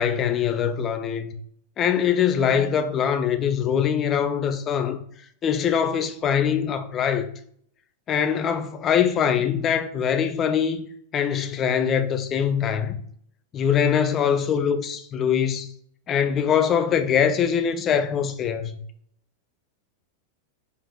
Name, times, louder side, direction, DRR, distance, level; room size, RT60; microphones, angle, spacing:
voice 1, 0.0-1.3 1.8-5.0 5.4-7.3 8.1-10.9 11.1-13.0 13.5-15.7 16.1-18.8, left 8 dB, 30° left, 0.3 m, -23 dB
3.3 x 2.9 x 2.3 m
figure-of-eight pair, 90°, 0 cm